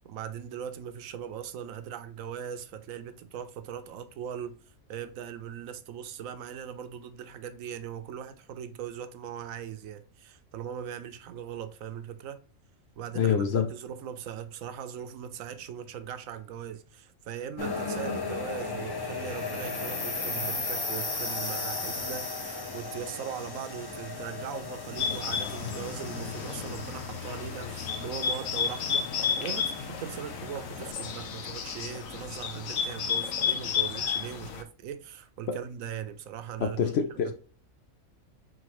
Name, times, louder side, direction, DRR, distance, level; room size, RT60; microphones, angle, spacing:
voice 1, 0.0-4.6 4.9-12.4 13.0-37.3, right 9 dB, 80° right, 1.0 m, -40 dB
voice 2, 13.2-13.7 35.5-35.6 36.6-37.3, left 7 dB, 65° left, 0.7 m, -26 dB
sound 1, 17.6-30.9, left 3 dB, 30° left, 0.4 m, -36 dB
Bird, 25.0-34.6, left 7 dB, 80° left, 1.1 m, -32 dB
3.9 x 3.7 x 3.0 m
omnidirectional pair, 1.4 m